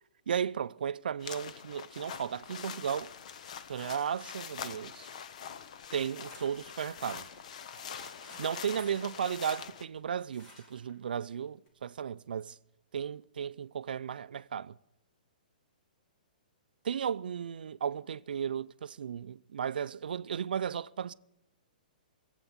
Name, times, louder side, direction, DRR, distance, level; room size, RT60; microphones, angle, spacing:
voice 1, 0.3-3.1 3.7-5.1 5.9-7.3 8.4-12.6 12.9-14.8 16.8-21.1, right 8 dB, 85° right, 0.4 m, -35 dB
sound 1, 1.2-9.9, left 8 dB, 50° left, 0.7 m, -44 dB
sound 2, 6.1-10.0 10.3-11.0 11.3-11.4 11.7-11.8, left 1 dB, 25° left, 2.1 m, -55 dB
20.5 x 8.1 x 7.3 m
hypercardioid pair, 170°, 5 cm